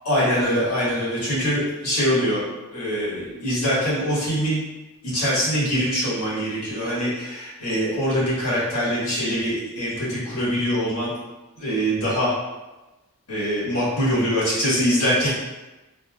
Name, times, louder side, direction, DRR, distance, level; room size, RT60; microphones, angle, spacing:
voice 1, 0.0-2.4 2.7-4.6 5.0-11.1 11.5-12.3 13.3-15.3, equal, 80° left, -9 dB, 1.4 m, -23 dB
3.1 x 2.6 x 2.3 m, 1.1 s
head